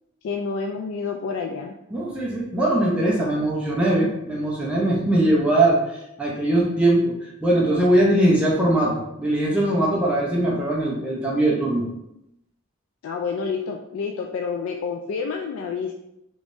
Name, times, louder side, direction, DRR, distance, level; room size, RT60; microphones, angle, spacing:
voice 1, 0.2-1.7 13.0-15.9, left 5 dB, 80° left, 2 dB, 0.3 m, -28 dB
voice 2, 1.9-11.9, right 1 dB, 5° right, -5 dB, 0.6 m, -21 dB
3.5 x 3.0 x 2.6 m, 0.84 s
head